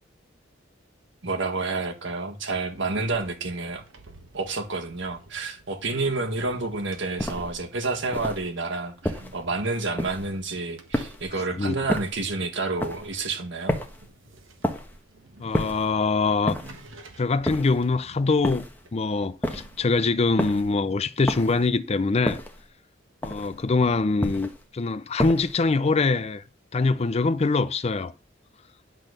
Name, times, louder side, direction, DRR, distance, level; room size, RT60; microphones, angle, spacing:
voice 1, 1.2-3.8 4.3-13.8, right 3 dB, 65° right, 1.7 m, -29 dB
sound 1, 2.4-20.5, right 2 dB, 80° right, 1.3 m, -51 dB
sound 2, 7.2-7.6 8.1-8.5 9.0-9.4 10.0-10.4 10.9-11.4 11.9-12.3 12.8-13.1 13.7-14.1 14.6-15.0 15.5-15.9 16.5-16.9 17.4-17.9 18.4-18.8 19.4-19.8 20.4-20.7 21.3-21.7 22.3-22.7 23.2-23.6 24.2-24.6 25.2-25.6, left 1 dB, 10° left, 1.1 m, -30 dB
voice 2, 15.4-16.6 17.2-22.4 23.2-26.4 26.7-28.1, left 3 dB, 35° left, 0.4 m, -24 dB
10.5 x 3.9 x 6.6 m
head